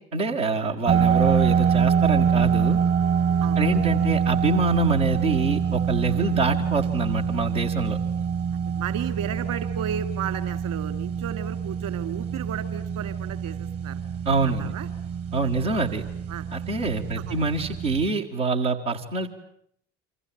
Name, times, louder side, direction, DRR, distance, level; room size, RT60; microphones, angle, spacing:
voice 1, 0.1-2.8 3.6-8.0 14.3-14.7 15.3-16.1 16.5-19.3, right 3 dB, 85° right, -2 dB, 1.9 m, -25 dB
sound 1, 0.9-18.1, right 7 dB, 35° right, 1.0 m, -25 dB
voice 2, 8.5-14.0 14.4-14.9 15.4-15.5 16.3-16.5 17.3-17.5, right 9 dB, 55° right, 10 dB, 2.7 m, -34 dB
29.0 x 25.0 x 7.6 m, 0.67 s
figure-of-eight pair, 60°, 38 cm